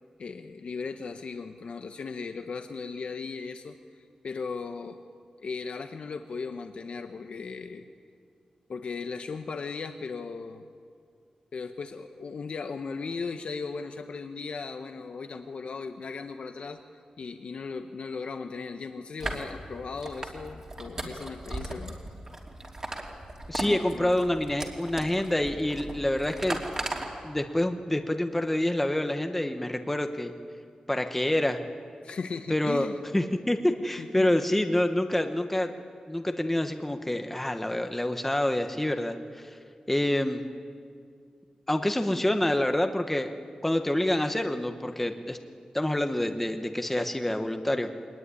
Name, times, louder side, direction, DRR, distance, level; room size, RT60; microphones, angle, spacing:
voice 1, 0.2-5.0 5.4-7.9 8.7-10.6 11.5-16.8 17.2-22.0 23.6-24.2 32.0-33.0 34.0-34.3, left 4 dB, 60° left, 6 dB, 1.0 m, -37 dB
sound 1, 19.2-27.1, right 1 dB, 25° right, 3.0 m, -37 dB
voice 2, 23.5-26.6 27.2-30.3 30.9-31.6 32.5-32.9 33.1-35.7 36.1-39.5 39.9-40.4 41.7-43.3 43.6-45.4 45.7-47.9, left 1 dB, 10° left, 6 dB, 1.1 m, -27 dB
23.5 x 19.5 x 9.8 m, 2.2 s
wide cardioid pair, 140°, 2 cm